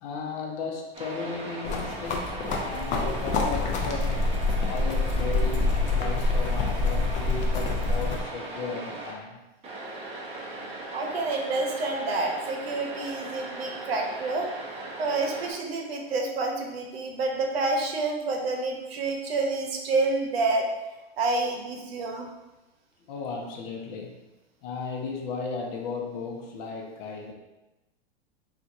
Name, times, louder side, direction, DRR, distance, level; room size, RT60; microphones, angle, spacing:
voice 1, 0.0-4.2 4.6-9.4 23.1-24.2 24.6-27.3, left 4 dB, 55° left, 1 dB, 0.8 m, -35 dB
sound 1, 0.9-9.1 9.6-15.5, right 2 dB, 20° right, 0.7 m, -38 dB
sound 2, 1.6-8.2, left 3 dB, 25° left, 0.4 m, -26 dB
voice 2, 10.9-14.5 15.0-20.7 21.2-22.3, right 3 dB, 80° right, 2 dB, 0.8 m, -28 dB
4.0 x 2.5 x 2.6 m, 1.0 s
hypercardioid pair, 120°, 30 cm